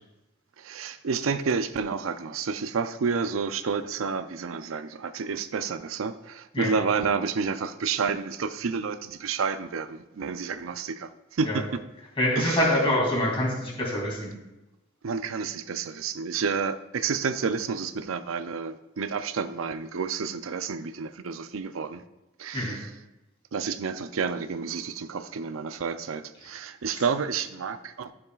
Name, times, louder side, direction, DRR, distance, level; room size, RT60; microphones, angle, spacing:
voice 1, 0.6-11.8 12.4-12.7 15.0-22.0 22.4-22.9 23.5-28.1, right 5 dB, 85° right, 11 dB, 0.5 m, -30 dB
voice 2, 12.2-14.3 22.5-22.8 26.9-27.0, left 1 dB, 30° left, -4 dB, 2.7 m, -25 dB
12.5 x 7.1 x 2.4 m, 0.98 s
head